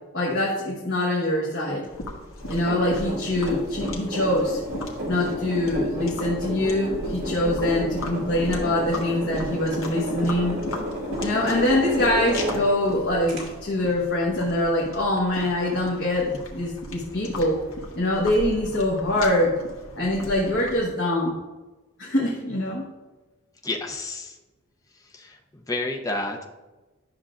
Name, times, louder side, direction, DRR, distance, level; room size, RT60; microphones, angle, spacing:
voice 1, 0.1-1.9 2.5-4.6 5.0-10.6 11.2-17.6 17.9-19.6 19.9-21.3 22.0-22.9, left 1 dB, 55° left, -4 dB, 1.3 m, -24 dB
sound 1, 1.9-20.9, left 1 dB, 75° left, 1.3 m, -37 dB
sound 2, 2.4-12.9 13.3-13.4, equal, 65° right, 2.7 m, -32 dB
voice 2, 23.6-24.3 25.1-26.4, left 2 dB, 15° left, 2 dB, 0.6 m, -30 dB
10.5 x 6.3 x 2.5 m, 1.1 s
head